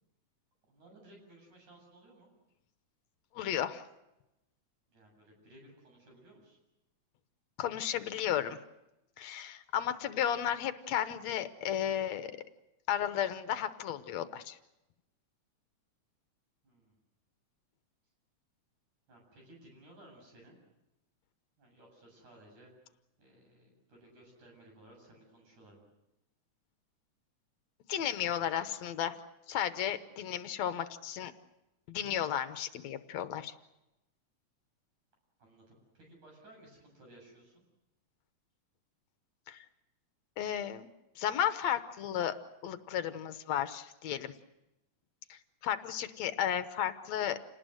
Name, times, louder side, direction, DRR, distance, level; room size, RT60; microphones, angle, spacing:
voice 1, 0.6-2.3 4.9-6.6 16.6-16.9 19.1-20.6 21.6-22.7 23.2-25.9 35.4-37.6, right 1 dB, 85° right, 1 dB, 9.3 m, -58 dB
voice 2, 3.3-3.8 7.6-8.6 9.2-12.3 12.9-14.6 27.9-29.2 29.5-31.3 31.9-33.5 39.5-39.7 40.4-40.9 41.2-42.4 42.6-44.3 45.3-47.4, left 10 dB, 70° left, 11 dB, 2.1 m, -33 dB
28.5 x 19.0 x 7.9 m, 0.94 s
omnidirectional pair, 3.4 m